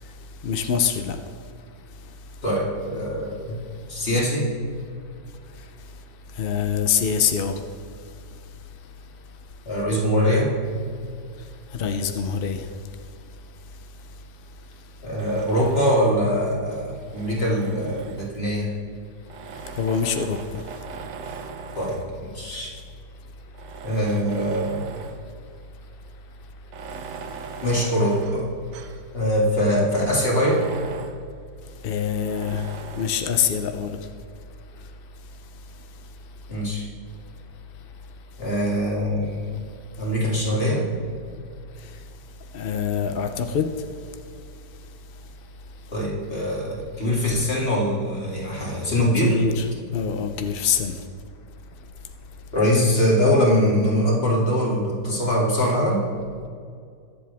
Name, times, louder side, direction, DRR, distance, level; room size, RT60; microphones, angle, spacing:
voice 1, 0.4-1.2 6.4-7.6 11.8-12.6 19.8-20.4 31.8-32.6 33.0-33.9 42.5-43.7 49.2-49.7 49.9-50.9, left 7 dB, 65° left, 0.5 m, -24 dB
voice 2, 2.4-3.6 3.9-4.5 9.6-10.5 15.0-18.7 21.7-22.7 23.8-24.9 27.6-28.5 29.1-30.6 36.5-36.9 38.4-39.6 40.0-40.9 45.9-49.4 52.5-56.0, equal, 35° left, 2.7 m, -22 dB
Tools, 15.2-16.3 17.0-18.6 19.3-22.2 22.9-23.0 23.5-25.3 25.6-25.7 26.6-29.1 29.5-29.6 29.9-31.3 32.2-33.2, right 6 dB, 85° right, 1.4 m, -39 dB
21.5 x 7.6 x 3.5 m
omnidirectional pair, 1.8 m